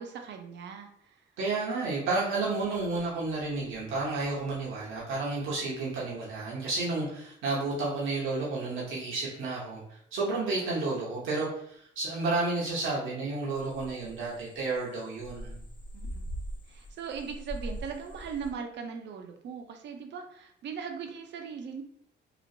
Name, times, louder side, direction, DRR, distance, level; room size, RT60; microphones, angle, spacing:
voice 1, 0.0-1.3 10.3-10.7 15.9-16.2 16.7-21.8, right 6 dB, 65° right, 4 dB, 0.5 m, -39 dB
voice 2, 1.4-15.6, right 3 dB, 85° right, -6 dB, 0.9 m, -31 dB
sound 1, 13.5-18.5, equal, 25° left, 0.4 m, -41 dB
3.0 x 2.4 x 2.6 m, 0.69 s
cardioid pair, 90°, 20 cm